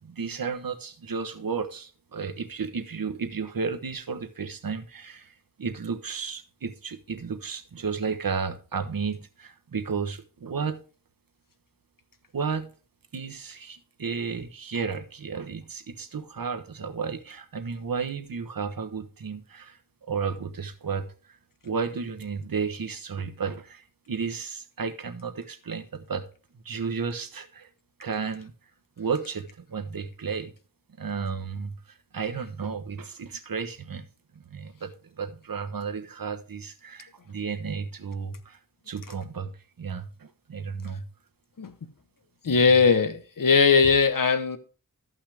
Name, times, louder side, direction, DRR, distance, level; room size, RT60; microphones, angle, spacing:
voice 1, 0.0-10.8 12.3-12.7 13.1-19.8 20.1-21.4 21.6-26.2 26.6-27.7 28.0-28.5 29.0-30.5 31.0-34.0 34.3-38.6 38.9-41.1 42.5-42.7, right 5 dB, 70° right, 7 dB, 1.1 m, -33 dB
voice 2, 42.4-44.6, left 5 dB, 60° left, 10 dB, 1.0 m, -19 dB
13.5 x 5.7 x 3.4 m, 0.37 s
wide cardioid pair, 85°, 36 cm